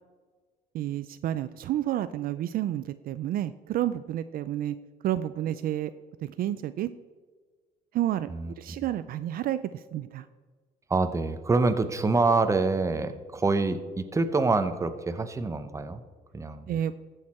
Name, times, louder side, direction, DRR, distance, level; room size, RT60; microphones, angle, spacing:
voice 1, 0.7-4.8 5.0-5.9 6.2-6.9 7.9-8.3 8.6-10.3 16.7-16.9, right 12 dB, 60° right, 13 dB, 0.4 m, -30 dB
voice 2, 10.9-16.0 16.3-16.7, right 3 dB, 20° right, 10 dB, 0.8 m, -26 dB
15.0 x 6.5 x 4.3 m, 1.4 s
cardioid pair, 110°, 17 cm